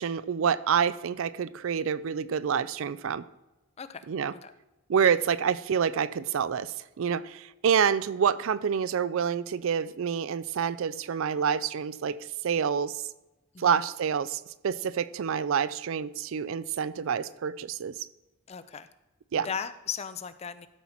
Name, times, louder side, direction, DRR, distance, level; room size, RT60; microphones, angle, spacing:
voice 1, 0.0-3.2 4.1-4.3 4.9-12.2 12.4-13.0 13.6-17.9 19.3-19.5, right 7 dB, 65° right, 17 dB, 0.4 m, -27 dB
voice 2, 18.5-18.9 19.4-20.7, left 7 dB, 30° left, 12 dB, 0.4 m, -37 dB
12.5 x 4.4 x 5.7 m, 1.0 s
head